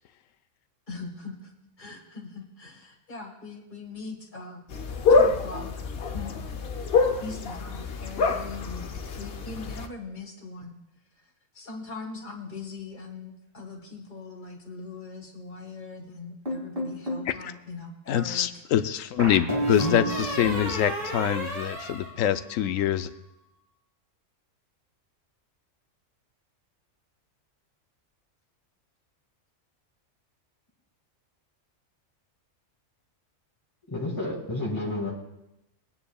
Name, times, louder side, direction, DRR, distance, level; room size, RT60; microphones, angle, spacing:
voice 1, 0.9-1.5 1.8-4.6 5.1-5.7 6.1-6.3 7.2-10.7 11.5-18.6, left 3 dB, 35° left, 1 dB, 1.8 m, -40 dB
sound 1, 4.7-9.9, left 4 dB, 55° left, 0.9 m, -26 dB
sound 2, 16.5-17.3 19.2-22.8, right 1 dB, 45° right, 2.8 m, -31 dB
voice 2, 18.1-20.0 20.4-23.1, left 11 dB, 80° left, 12 dB, 1.0 m, -25 dB
voice 3, 19.5-20.4 33.9-35.1, left 1 dB, 15° left, -5 dB, 2.0 m, -31 dB
21.5 x 9.6 x 2.3 m, 0.89 s
omnidirectional pair, 1.3 m